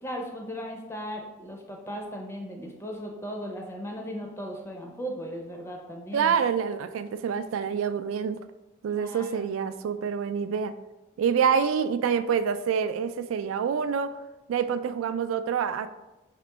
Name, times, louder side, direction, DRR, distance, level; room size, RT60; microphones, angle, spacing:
voice 1, 0.0-6.4 8.9-9.5, equal, 15° left, 1 dB, 0.5 m, -37 dB
voice 2, 6.1-8.4 8.8-10.8 11.2-14.2 14.5-15.9, right 7 dB, 90° right, 12 dB, 0.3 m, -27 dB
5.0 x 2.9 x 3.3 m, 1.0 s
head